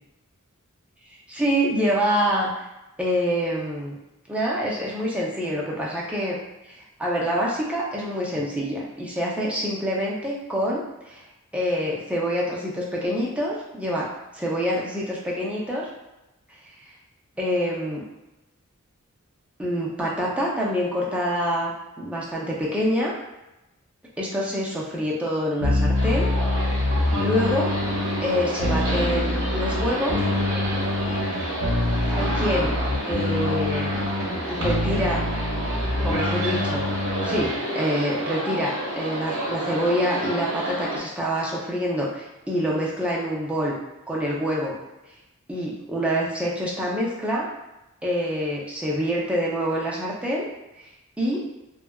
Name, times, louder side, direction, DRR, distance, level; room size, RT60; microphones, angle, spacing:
voice 1, 1.3-2.5 3.0-4.0 4.3-6.4 6.7-11.2 11.5-14.1 14.3-15.9 17.4-18.0 19.6-21.7 22.0-23.1 24.2-26.3 27.2-27.7 28.2-30.2 32.1-32.8 33.1-34.0 34.5-35.2 36.0-36.8 37.2-43.7 44.1-44.7 45.5-47.5 48.0-50.5 50.8-50.9 51.2-51.4, equal, 5° right, -5 dB, 0.4 m, -26 dB
sound 1, 25.6-37.5, left 2 dB, 70° left, 0.9 m, -26 dB
sound 2, 25.9-41.0, right 1 dB, 65° right, 0.7 m, -29 dB
2.6 x 2.3 x 2.2 m, 0.97 s
head